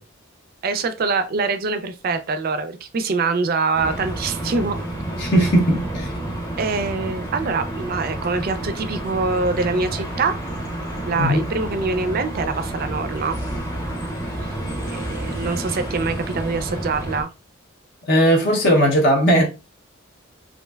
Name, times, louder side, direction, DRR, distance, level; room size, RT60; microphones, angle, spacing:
voice 1, 0.6-4.8 6.6-10.4 11.0-13.4 14.4-14.5 14.9-17.3, right 4 dB, 45° right, 0.3 m, -24 dB
sound 1, 3.7-17.2, right 1 dB, 20° left, 0.8 m, -29 dB
voice 2, 5.2-6.1 11.2-11.4 18.1-19.5, equal, 55° left, 0.6 m, -17 dB
3.2 x 2.5 x 2.2 m
head